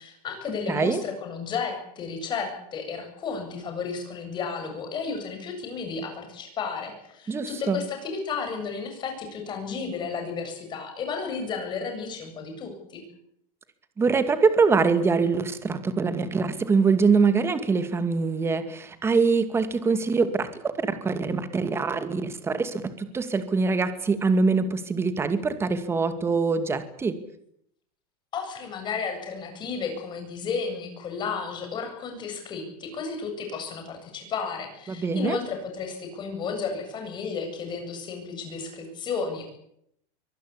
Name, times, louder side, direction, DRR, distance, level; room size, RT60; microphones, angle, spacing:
voice 1, 0.0-13.0 28.3-39.5, left 5 dB, 25° left, 4 dB, 7.9 m, -33 dB
voice 2, 0.7-1.0 7.3-7.8 14.0-20.7 21.0-27.2 34.9-35.4, right 4 dB, 15° right, 10 dB, 2.3 m, -24 dB
24.0 x 18.5 x 8.6 m, 0.71 s
supercardioid pair, 160°, 19 cm